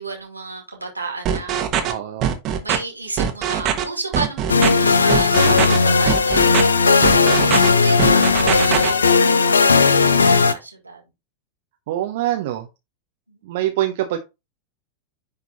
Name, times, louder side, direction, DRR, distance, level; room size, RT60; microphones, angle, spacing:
voice 1, 0.0-1.9 2.6-4.4 4.7-11.0 13.3-13.4, right 3 dB, 85° right, 2.1 m, -31 dB
sound 1, 1.2-1.9 2.2-2.8 3.2-3.8 4.1-4.7 5.1-5.8 6.1-6.6 7.0-7.7 8.0-8.9, right 9 dB, 35° right, 1.3 m, -21 dB
voice 2, 1.8-2.3 11.9-12.7 13.4-14.2, right 13 dB, 55° right, 0.8 m, -24 dB
sound 2, 4.5-10.5, left 4 dB, 75° left, 0.6 m, -16 dB
10.0 x 3.8 x 2.8 m
figure-of-eight pair, 90°, 0 cm